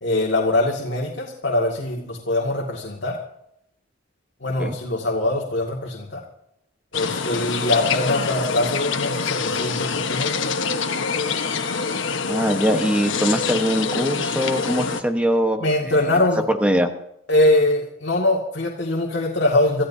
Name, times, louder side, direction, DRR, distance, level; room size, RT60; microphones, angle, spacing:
voice 1, 0.0-3.2 4.4-6.2 6.9-10.5 15.6-16.4 17.3-19.9, left 2 dB, 65° left, -2 dB, 2.2 m, -22 dB
sound 1, 6.9-15.0, left 5 dB, 85° left, 1.3 m, -25 dB
voice 2, 12.3-16.2 16.5-16.9, equal, 5° right, 6 dB, 1.2 m, -22 dB
27.0 x 14.5 x 2.8 m, 0.80 s
head